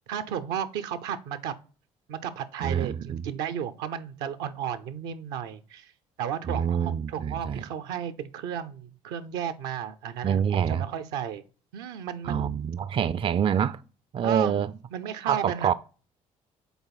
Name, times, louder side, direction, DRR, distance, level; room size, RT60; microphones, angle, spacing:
voice 1, 0.1-1.5 2.1-5.9 6.2-11.4 11.7-12.5 14.2-14.6 14.9-15.7, right 8 dB, 75° right, 0.6 m, -33 dB
voice 2, 2.6-3.2 6.4-7.6 10.2-10.9 12.2-13.8 14.1-14.7 15.3-15.7, right 8 dB, 30° right, 0.4 m, -26 dB
6.9 x 4.1 x 4.0 m
hypercardioid pair, 55°, 17 cm